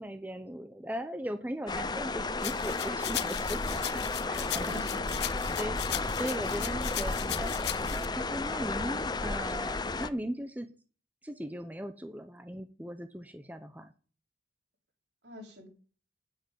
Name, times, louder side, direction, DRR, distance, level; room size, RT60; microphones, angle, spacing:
voice 1, 0.0-4.9 5.2-5.8 6.2-7.5 7.9-10.7 11.2-13.9, equal, 10° right, 8 dB, 0.8 m, -38 dB
sound 1, 1.7-10.1, left 3 dB, 25° left, 0.7 m, -33 dB
sound 2, 2.4-8.0, left 14 dB, 65° left, 0.6 m, -38 dB
voice 2, 4.6-5.5 15.2-15.7, left 1 dB, 70° right, 1 dB, 5.1 m, -48 dB
10.0 x 9.3 x 9.4 m, 0.41 s
head